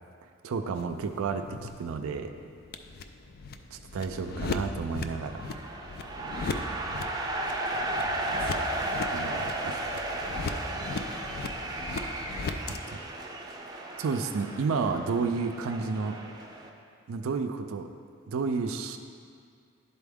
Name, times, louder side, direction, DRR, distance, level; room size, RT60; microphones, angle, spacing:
voice 1, 0.4-2.3 3.7-5.5 7.7-8.5 9.1-10.0 12.1-12.3 12.6-13.3 14.0-16.2 17.1-17.9 18.3-19.0, right 5 dB, 85° right, 6 dB, 0.4 m, -32 dB
sound 1, 0.7-12.8, left 3 dB, 50° left, 0.3 m, -38 dB
sound 2, 5.2-16.7, right 1 dB, 20° right, 0.5 m, -34 dB
11.0 x 4.1 x 3.5 m, 2.2 s
head